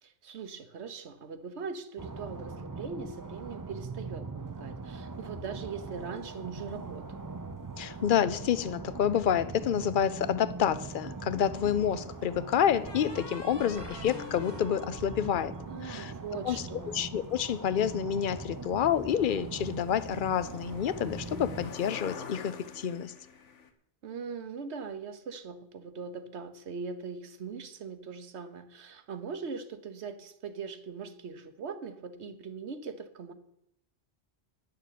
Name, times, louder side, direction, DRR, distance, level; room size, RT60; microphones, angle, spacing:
voice 1, 0.0-7.2 15.7-17.0 24.0-33.3, right 5 dB, 65° right, 11 dB, 1.3 m, -41 dB
sound 1, 2.0-21.7, right 3 dB, 30° right, 0.3 m, -41 dB
voice 2, 7.8-15.5 15.8-16.1 16.4-23.1, left 9 dB, 55° left, 15 dB, 0.7 m, -28 dB
sound 2, 11.0-11.9 12.9-16.2, left 2 dB, 20° left, 1.4 m, -45 dB
sound 3, 15.7-15.8 16.0-23.7, left 5 dB, 75° left, 1.4 m, -48 dB
10.5 x 6.7 x 8.3 m, 0.77 s
omnidirectional pair, 1.2 m